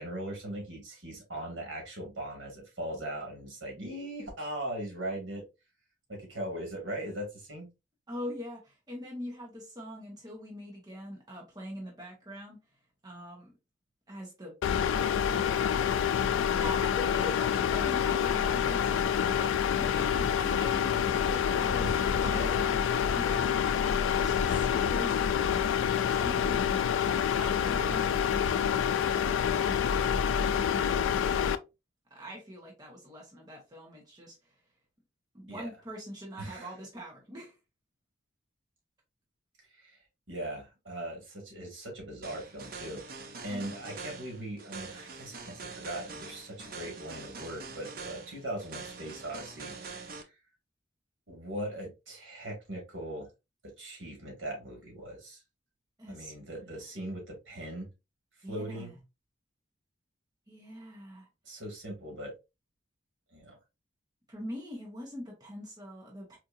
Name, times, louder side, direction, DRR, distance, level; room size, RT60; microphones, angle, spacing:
voice 1, 0.0-5.4 6.1-7.7 21.8-22.0 22.2-22.5 35.5-35.7 36.4-36.8 39.8-40.0 40.3-43.0 43.4-50.4 51.3-53.3 53.8-55.4 56.1-57.9 58.5-59.0 61.5-62.3 63.3-63.6, right 1 dB, 70° right, 1.8 m, -39 dB
voice 2, 8.1-12.6 13.0-13.5 14.1-14.5 16.5-28.8 32.1-34.5 35.3-37.6 43.5-43.7 56.0-56.3 58.4-58.9 60.5-61.3 64.3-66.4, equal, 20° right, 1.1 m, -43 dB
sound 1, 14.6-31.6, left 8 dB, 80° left, 0.3 m, -27 dB
sound 2, 42.2-50.2, right 4 dB, 50° right, 0.6 m, -44 dB
4.3 x 2.7 x 2.5 m
head